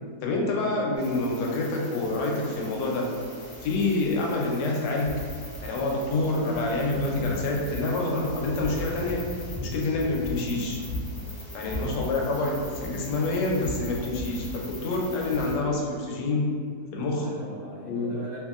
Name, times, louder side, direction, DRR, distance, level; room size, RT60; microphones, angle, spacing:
voice 1, 0.2-3.1 3.6-5.2 5.6-9.3 9.6-10.8 11.5-16.6 16.9-17.4 17.8-18.2, left 2 dB, 90° left, -1 dB, 1.2 m, -27 dB
sound 1, 1.0-15.5, equal, 30° left, 0.7 m, -39 dB
voice 2, 11.0-11.6 17.1-18.4, right 1 dB, 75° right, -9 dB, 0.5 m, -43 dB
2.7 x 2.7 x 2.4 m, 2.1 s
omnidirectional pair, 1.7 m